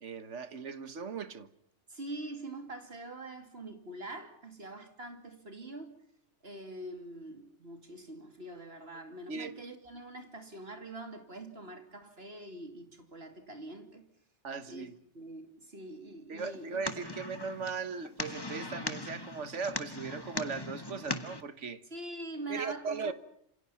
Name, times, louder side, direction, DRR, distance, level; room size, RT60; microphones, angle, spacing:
voice 1, 0.0-1.5 9.3-9.6 14.4-15.0 16.3-21.8 22.5-23.1, right 5 dB, 80° right, 1.7 m, -38 dB
voice 2, 1.9-5.9 6.4-14.1 14.7-17.0 21.9-23.1, right 2 dB, 55° right, 3.1 m, -44 dB
sound 1, 16.4-21.4, left 2 dB, 20° left, 1.6 m, -40 dB
27.5 x 27.0 x 5.8 m
omnidirectional pair, 1.2 m